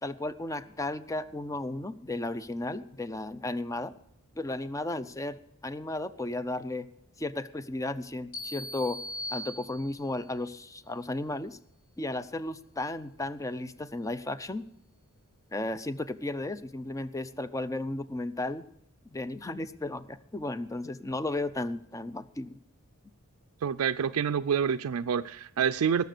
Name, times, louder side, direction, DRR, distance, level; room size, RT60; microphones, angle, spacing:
voice 1, 0.0-3.9 4.4-6.9 7.2-9.0 9.3-11.6 12.0-14.6 15.5-18.6 19.1-22.6, left 2 dB, 15° left, 13 dB, 0.5 m, -34 dB
sound 1, 8.3-10.2, equal, 50° left, 3.8 m, -39 dB
voice 2, 23.6-26.0, right 7 dB, 70° right, 9 dB, 0.4 m, -27 dB
19.0 x 6.8 x 6.6 m, 0.75 s
head